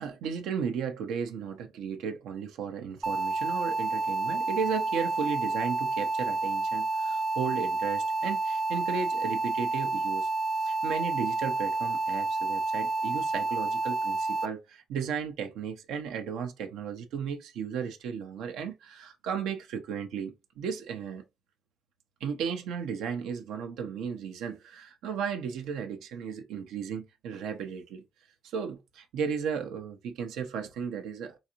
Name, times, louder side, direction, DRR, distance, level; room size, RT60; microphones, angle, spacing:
voice 1, 0.0-10.3 10.6-21.2 22.2-28.0 28.4-31.4, right 7 dB, 90° right, 0.6 m, -35 dB
sound 1, 3.0-14.5, right 3 dB, 35° right, 0.3 m, -29 dB
3.8 x 2.5 x 2.8 m
cardioid pair, 90°, 0 cm